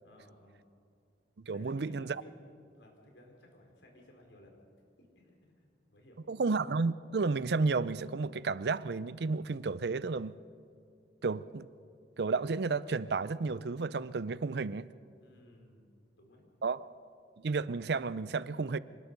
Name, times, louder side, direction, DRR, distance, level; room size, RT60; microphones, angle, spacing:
voice 1, 0.0-0.6 1.5-4.6 5.0-6.2 15.2-16.5, left 1 dB, 80° left, 4.3 m, -58 dB
voice 2, 1.5-2.2 6.3-10.3 11.2-11.7 12.2-14.9 16.6-16.9 17.4-18.8, right 4 dB, 65° right, 0.5 m, -32 dB
26.0 x 19.5 x 5.4 m
head